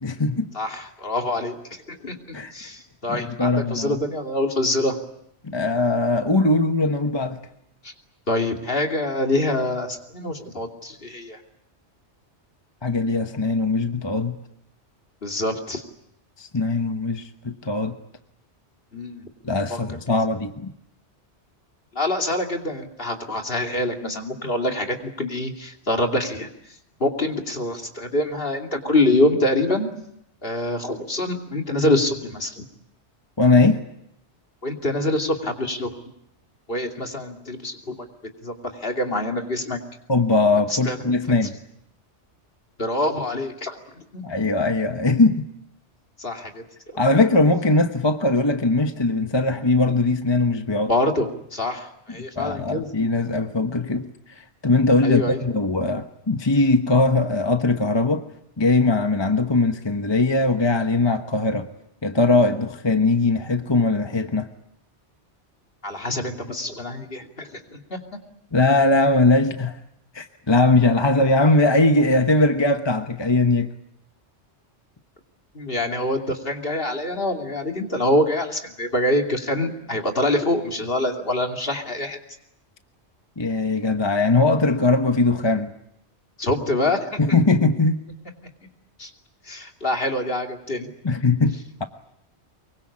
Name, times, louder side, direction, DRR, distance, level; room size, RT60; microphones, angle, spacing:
voice 1, 0.0-0.5 2.3-2.5 3.1-4.0 5.4-7.4 12.8-14.4 16.4-18.0 19.4-20.7 33.4-33.8 40.1-41.5 44.2-45.4 47.0-50.9 52.4-58.2 58.6-61.7 62.0-64.5 68.5-69.8 70.1-73.7 83.4-85.7 87.2-88.0 91.0-91.8, left 2 dB, 25° left, 7 dB, 1.1 m, -20 dB
voice 2, 0.5-5.0 7.8-7.9 8.3-11.4 15.2-15.8 18.9-19.3 19.7-19.8 21.9-26.5 27.0-29.9 30.4-32.6 34.6-35.9 36.7-38.1 38.4-39.8 40.7-41.0 42.8-43.8 44.1-44.4 46.2-46.6 50.9-52.9 55.0-55.4 65.8-68.0 75.5-82.2 86.4-87.2 89.0-89.1 89.5-90.9, left 1 dB, 50° left, 3 dB, 2.9 m, -25 dB
24.5 x 23.0 x 8.6 m, 0.78 s
omnidirectional pair, 1.2 m